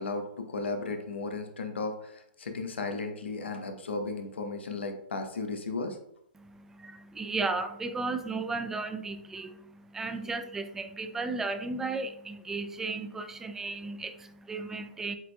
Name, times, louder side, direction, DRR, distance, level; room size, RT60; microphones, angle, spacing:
voice 1, 0.0-6.0, left 3 dB, 85° left, 5 dB, 0.8 m, -35 dB
voice 2, 6.4-15.2, right 3 dB, 5° right, 8 dB, 0.3 m, -35 dB
7.7 x 2.6 x 2.2 m, 0.73 s
hypercardioid pair, 135°, 6 cm